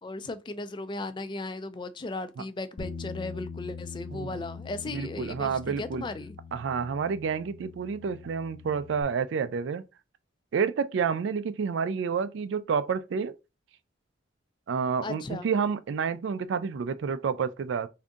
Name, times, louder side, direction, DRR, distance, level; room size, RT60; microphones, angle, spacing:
voice 1, 0.0-6.4 15.0-15.5, left 2 dB, 25° left, 0.3 m, -36 dB
Bass guitar, 2.8-9.0, left 5 dB, 90° left, 0.7 m, -43 dB
voice 2, 4.9-6.0 6.5-9.8 10.5-13.4 14.7-17.9, right 6 dB, 75° right, 0.3 m, -29 dB
3.5 x 2.6 x 3.7 m
head